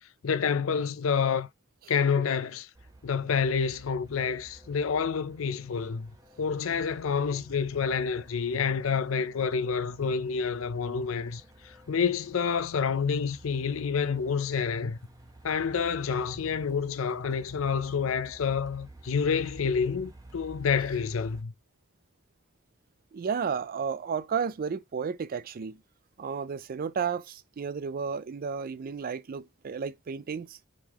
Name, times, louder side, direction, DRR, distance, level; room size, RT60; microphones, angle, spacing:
voice 1, 0.2-1.5 1.9-2.7 3.0-6.1 6.4-15.0 15.4-21.5, left 6 dB, 70° left, 0.5 m, -28 dB
Truck, 2.7-21.4, right 2 dB, 15° right, 0.9 m, -52 dB
voice 2, 23.1-25.8 26.2-30.6, right 6 dB, 45° right, 0.4 m, -32 dB
5.2 x 3.5 x 2.9 m
head